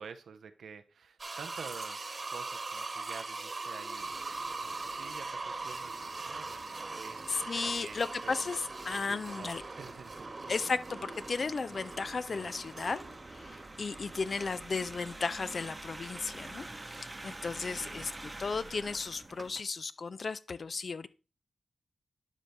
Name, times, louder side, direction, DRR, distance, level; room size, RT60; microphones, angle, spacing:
voice 1, 0.0-4.1 4.6-7.3 7.6-8.6 8.9-10.8 14.1-14.5 17.4-18.0, right 6 dB, 80° right, 0.5 m, -49 dB
sound 1, 1.2-19.0 19.4-19.5, right 3 dB, 45° right, 1.2 m, -42 dB
sound 2, 4.0-19.6, right 2 dB, 25° right, 0.8 m, -48 dB
voice 2, 7.3-9.6 10.5-13.0 13.3-16.7 16.9-21.1, left 4 dB, 55° left, 0.4 m, -35 dB
11.5 x 4.1 x 3.4 m
cardioid pair, 55°, 0 cm